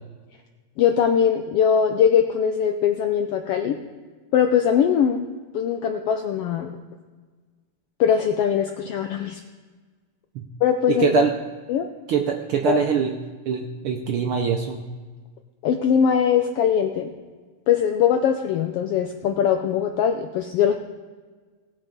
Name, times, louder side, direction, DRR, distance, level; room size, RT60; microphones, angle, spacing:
voice 1, 0.8-3.8 4.3-5.3 5.5-6.7 8.0-9.4 10.6-11.2 11.7-11.9 12.7-12.8 15.6-17.1 17.7-20.7, left 8 dB, 80° left, 5 dB, 1.3 m, -21 dB
voice 2, 10.9-11.3 12.1-13.1 13.5-14.8, right 7 dB, 85° right, 3 dB, 1.2 m, -23 dB
18.0 x 6.0 x 5.2 m, 1.4 s
omnidirectional pair, 3.3 m